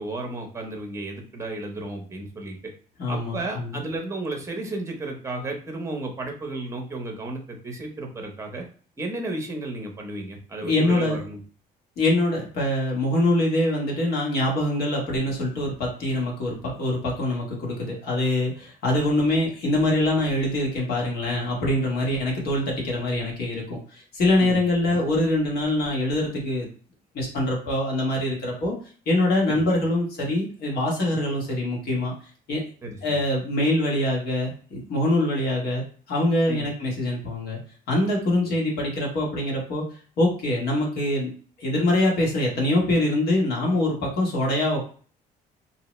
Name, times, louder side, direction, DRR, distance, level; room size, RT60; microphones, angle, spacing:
voice 1, 0.0-2.6 3.1-8.6 9.0-11.4 24.4-25.0 29.5-29.8 32.8-33.2 36.5-36.7 38.5-38.6, right 2 dB, 15° right, 3 dB, 0.8 m, -33 dB
voice 2, 3.0-3.8 10.6-11.2 12.0-26.7 27.1-28.7 29.0-32.1 32.5-32.6 33.0-35.8 36.1-37.6 37.9-39.8 40.2-41.3 41.6-44.9, left 1 dB, 65° left, -2 dB, 1.3 m, -24 dB
2.7 x 2.1 x 3.0 m, 0.43 s
cardioid pair, 110°, 17 cm